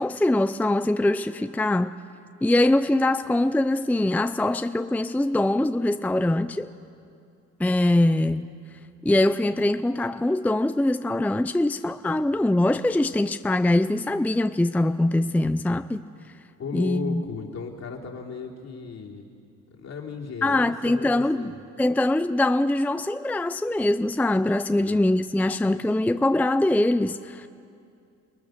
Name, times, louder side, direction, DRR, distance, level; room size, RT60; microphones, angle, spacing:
voice 1, 0.0-1.9 2.4-6.7 7.6-8.4 9.0-16.0 16.7-17.2 20.4-21.5 21.8-27.5, left 1 dB, 5° left, 10 dB, 0.5 m, -23 dB
voice 2, 16.6-19.3 19.7-21.6 24.8-25.0, left 5 dB, 60° left, -2 dB, 3.6 m, -36 dB
29.5 x 20.0 x 6.6 m, 2.5 s
cardioid pair, 90°, 30 cm